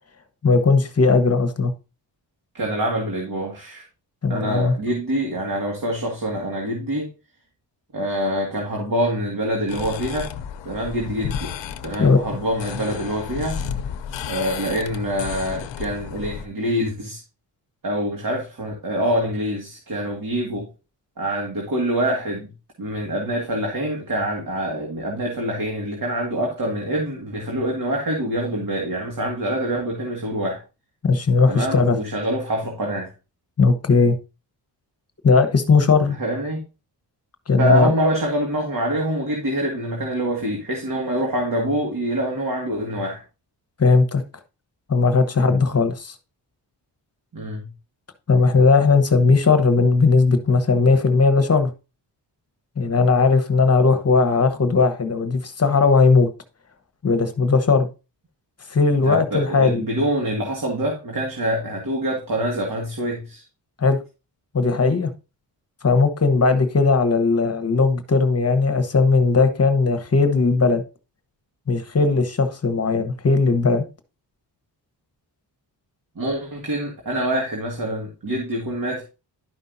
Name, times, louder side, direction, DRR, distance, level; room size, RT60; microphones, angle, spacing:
voice 1, 0.4-1.7 4.2-4.8 12.0-12.2 31.0-32.0 33.6-34.2 35.2-36.2 37.5-37.9 43.8-44.2 44.9-46.1 48.3-51.7 52.8-56.3 57.0-57.9 58.7-59.8 63.8-64.0 64.5-65.1 65.8-70.8 71.7-73.8, left 4 dB, 35° left, 1.1 m, -18 dB
voice 2, 2.5-3.9 4.3-7.1 7.9-10.3 10.7-11.5 11.8-13.6 14.3-17.2 17.8-20.7 21.2-22.5 22.8-30.6 31.5-33.1 36.0-36.6 37.6-43.2 45.4-45.6 47.3-47.7 59.0-63.4 76.2-79.0, right 1 dB, 50° right, 2.1 m, -25 dB
sound 1, 9.7-16.5, left 8 dB, 85° left, 0.8 m, -32 dB
11.5 x 5.5 x 2.7 m
cardioid pair, 75°, 43 cm